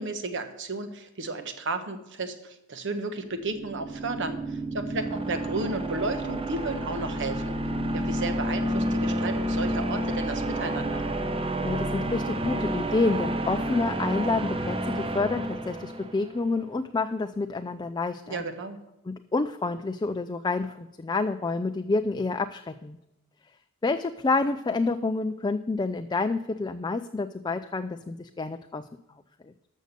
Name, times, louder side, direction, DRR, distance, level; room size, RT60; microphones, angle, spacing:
voice 1, 0.0-7.5 7.9-11.0 18.3-18.8, right 3 dB, 60° right, 9 dB, 1.2 m, -33 dB
sound 1, 3.4-16.4, right 1 dB, 25° right, 0.9 m, -30 dB
voice 2, 11.6-18.4 19.1-23.0 23.8-28.9, left 3 dB, 20° left, 9 dB, 0.4 m, -28 dB
13.0 x 6.5 x 6.7 m, 0.91 s
head